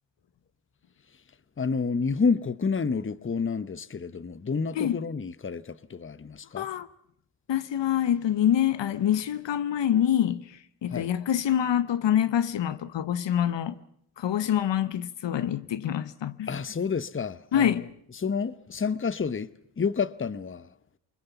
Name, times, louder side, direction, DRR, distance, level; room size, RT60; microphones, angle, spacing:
voice 1, 1.6-6.7 10.9-11.1 16.5-17.8 18.2-19.5 19.8-20.7, left 5 dB, 25° left, 0.9 m, -29 dB
voice 2, 6.6-6.9 7.5-13.8 14.2-16.5 17.5-17.8, left 10 dB, 70° left, 0.9 m, -26 dB
24.0 x 21.5 x 7.0 m
supercardioid pair, 45°, 46 cm